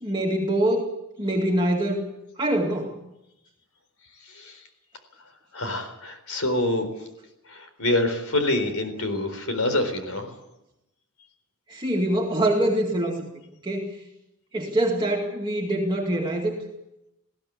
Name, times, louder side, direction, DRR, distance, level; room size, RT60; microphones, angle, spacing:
voice 1, 0.0-0.9 1.2-2.1 2.4-3.0 11.7-13.2 13.6-13.8 14.5-16.6, right 1 dB, 20° right, -1 dB, 2.2 m, -24 dB
voice 2, 5.5-6.9 7.5-10.3, left 1 dB, 75° left, 8 dB, 4.1 m, -26 dB
20.5 x 16.0 x 8.5 m, 0.89 s
head